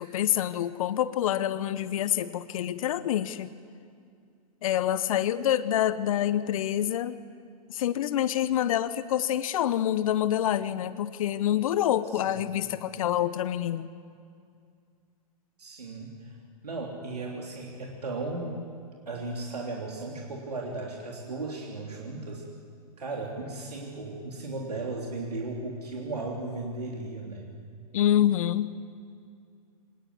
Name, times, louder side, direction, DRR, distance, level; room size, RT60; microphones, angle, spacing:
voice 1, 0.0-3.5 4.6-7.2 7.7-13.9 27.9-28.7, left 11 dB, 65° left, 14 dB, 0.9 m, -27 dB
voice 2, 15.6-16.3 16.6-18.7 19.1-22.4 23.0-27.5, right 2 dB, 85° right, -1 dB, 3.3 m, -36 dB
24.5 x 19.0 x 9.7 m, 2.3 s
hypercardioid pair, 110°, 20 cm